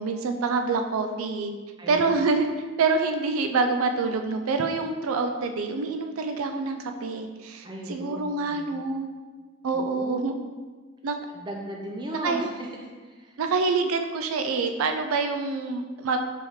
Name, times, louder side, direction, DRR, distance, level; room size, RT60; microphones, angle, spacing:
voice 1, 0.0-1.5 1.9-2.5 2.8-9.1 9.6-10.3 11.0-11.2 12.1-12.5 13.4-16.2, right 4 dB, 90° right, 5 dB, 0.4 m, -26 dB
voice 2, 1.8-2.1 7.6-8.2 8.5-8.8 9.7-10.4 11.3-13.4, right 1 dB, 20° right, 0 dB, 0.5 m, -37 dB
4.4 x 3.5 x 3.1 m, 1.4 s
head